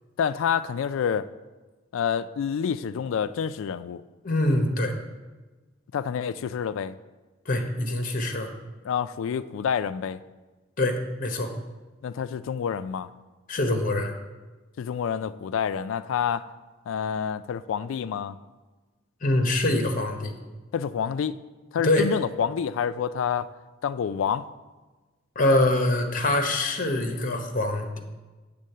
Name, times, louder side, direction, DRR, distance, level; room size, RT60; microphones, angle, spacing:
voice 1, 0.2-1.3 1.9-4.0 5.9-7.0 8.8-10.2 12.0-13.1 14.8-16.5 16.9-18.4 20.7-21.3 21.7-23.5 23.8-24.5, left 7 dB, 75° left, 14 dB, 0.3 m, -28 dB
voice 2, 4.2-5.0 7.5-8.5 10.8-11.5 13.5-14.1 19.2-20.3 21.8-22.0 25.4-28.0, left 1 dB, 40° left, 5 dB, 0.8 m, -24 dB
7.6 x 3.7 x 6.6 m, 1.2 s
head